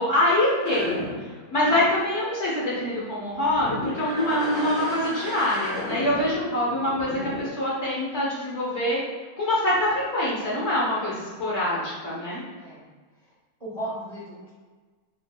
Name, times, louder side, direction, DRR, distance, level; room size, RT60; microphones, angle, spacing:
voice 1, 0.0-9.0 9.4-12.4, left 1 dB, 50° left, -7 dB, 1.2 m, -25 dB
sound 1, 0.6-3.0 3.3-7.5, left 1 dB, 65° left, 1.8 m, -35 dB
voice 2, 12.5-12.9 13.6-14.5, right 1 dB, 25° right, -8 dB, 1.0 m, -36 dB
4.8 x 3.6 x 2.2 m, 1.4 s
omnidirectional pair, 1.7 m